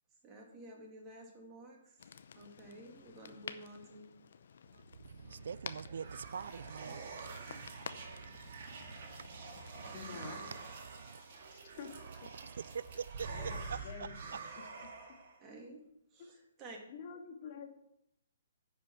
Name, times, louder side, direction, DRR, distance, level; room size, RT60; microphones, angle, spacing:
voice 1, 0.2-2.0 2.4-4.1 15.4-15.8 16.1-16.8, right 1 dB, 20° right, 2.2 m, -52 dB
camp fire, 2.0-10.6, left 6 dB, 65° left, 0.7 m, -52 dB
voice 2, 4.7-11.5 12.2-14.4, right 6 dB, 70° right, 0.3 m, -46 dB
sound 1, 5.4-15.4, right 4 dB, 50° right, 2.1 m, -47 dB
voice 3, 9.9-10.4 11.5-11.9 13.3-13.5 13.8-14.1 16.9-17.7, left 6 dB, 45° left, 1.8 m, -47 dB
10.5 x 5.0 x 5.9 m
hypercardioid pair, 150°, 0 cm